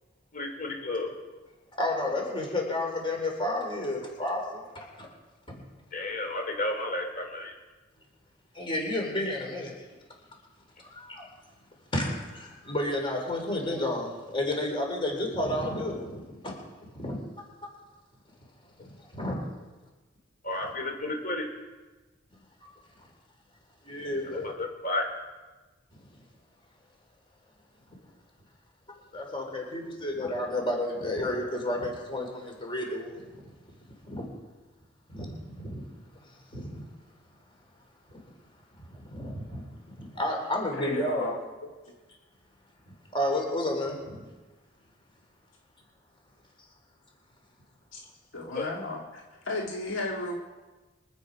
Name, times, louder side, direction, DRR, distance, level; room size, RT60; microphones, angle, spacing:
voice 1, 0.3-1.1 5.9-7.5 20.4-21.5 24.3-25.1 48.5-48.7, left 2 dB, 45° left, 3 dB, 3.1 m, -32 dB
voice 2, 1.8-4.7 5.0-5.1 5.5-5.6 8.5-9.7 10.9-11.3 11.9-17.2 18.8-19.4 23.8-24.5 29.1-33.5 34.0-34.3 35.1-35.8 36.2-36.9 38.1-38.2 38.8-41.3 43.1-44.2, left 1 dB, 25° left, 1 dB, 3.7 m, -31 dB
voice 3, 40.7-41.4 47.9-48.0 48.3-50.4, left 2 dB, 75° left, -1 dB, 1.9 m, -34 dB
24.5 x 8.5 x 5.2 m, 1.2 s
head